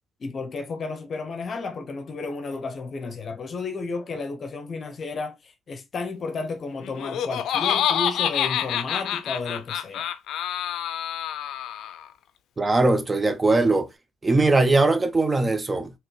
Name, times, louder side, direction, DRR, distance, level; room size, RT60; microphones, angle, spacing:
voice 1, 0.2-10.1, left 3 dB, 50° left, 0.7 m, -32 dB
Laughter, 6.8-12.1, left 10 dB, 80° left, 0.4 m, -27 dB
voice 2, 12.6-13.9 14.2-15.9, right 2 dB, 25° right, 0.7 m, -20 dB
3.9 x 3.0 x 3.1 m
cardioid pair, 90°, 0 cm